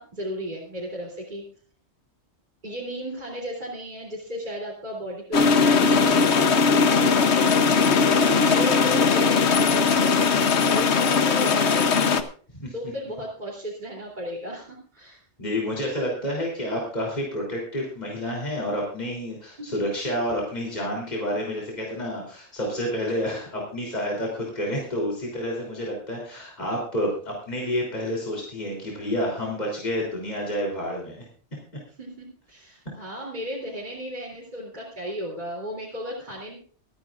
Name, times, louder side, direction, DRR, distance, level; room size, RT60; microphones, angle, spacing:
voice 1, 0.0-1.4 2.6-7.5 8.2-12.1 12.7-15.2 19.6-20.1 25.2-25.3 32.0-36.6, equal, 40° right, -4 dB, 3.5 m, -34 dB
sound 1, 5.3-12.2, left 5 dB, 70° left, 1.2 m, -19 dB
voice 2, 15.4-31.3, equal, 40° left, -2 dB, 3.7 m, -29 dB
26.0 x 9.7 x 2.5 m, 0.44 s
omnidirectional pair, 1.2 m